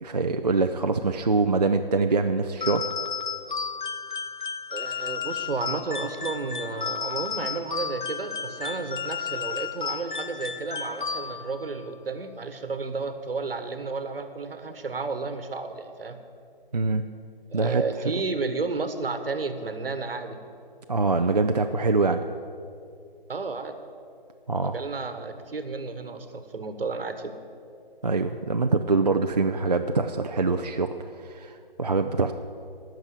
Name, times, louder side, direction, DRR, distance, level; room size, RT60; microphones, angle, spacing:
voice 1, 0.0-2.8 16.7-17.0 17.5-17.8 20.9-22.2 24.5-24.7 28.0-32.3, right 3 dB, 45° right, 5 dB, 0.4 m, -24 dB
sound 1, 2.6-11.6, left 6 dB, 55° left, 0.7 m, -33 dB
voice 2, 4.7-16.2 17.5-20.4 23.3-23.8 24.6-27.3, right 4 dB, 75° right, 9 dB, 1.2 m, -32 dB
12.5 x 6.0 x 8.6 m, 2.4 s
hypercardioid pair, 175°, 29 cm